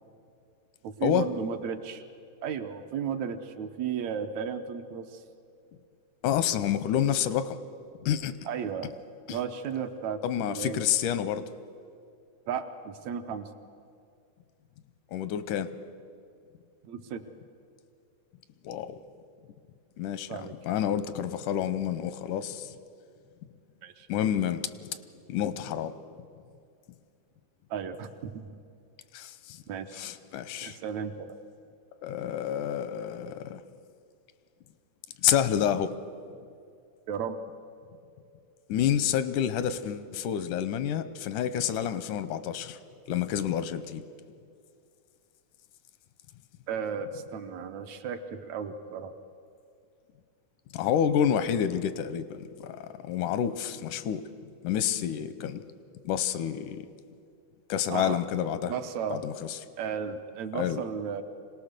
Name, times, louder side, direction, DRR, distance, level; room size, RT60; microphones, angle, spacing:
voice 1, 0.8-2.0 2.4-5.2 8.5-8.9 9.3-10.8 12.5-13.5 16.8-17.2 20.3-20.7 23.8-24.1 27.7-28.5 29.7-30.0 30.6-31.4 37.1-37.4 46.7-49.1 57.9-58.2 58.5-59.2 59.8-61.2, right 7 dB, 70° right, 7 dB, 2.0 m, -34 dB
voice 2, 6.2-7.6 8.0-8.3 9.3-9.4 10.2-11.4 15.1-15.7 18.6-19.0 20.0-22.7 24.1-24.7 25.3-25.9 29.1-29.6 29.9-30.8 32.0-33.6 35.2-36.0 38.7-42.8 43.1-44.0 50.7-54.2 54.6-55.6 56.0-56.9 57.7-58.7 59.1-59.6 60.5-60.8, left 9 dB, 85° left, 12 dB, 2.3 m, -29 dB
25.5 x 18.5 x 6.6 m, 2.4 s
omnidirectional pair, 3.6 m